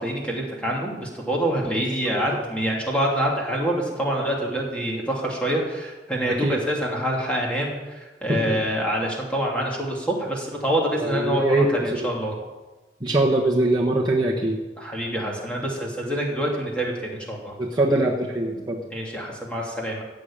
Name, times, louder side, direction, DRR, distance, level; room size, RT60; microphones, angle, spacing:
voice 1, 0.0-12.3 14.8-17.5 18.9-20.0, right 1 dB, 5° left, -2 dB, 2.8 m, -26 dB
voice 2, 2.0-2.4 6.4-6.6 8.3-8.6 11.0-12.1 13.0-14.6 16.0-16.1 17.6-18.8, right 1 dB, 25° right, -4 dB, 1.3 m, -23 dB
15.5 x 6.6 x 8.8 m, 1.2 s
head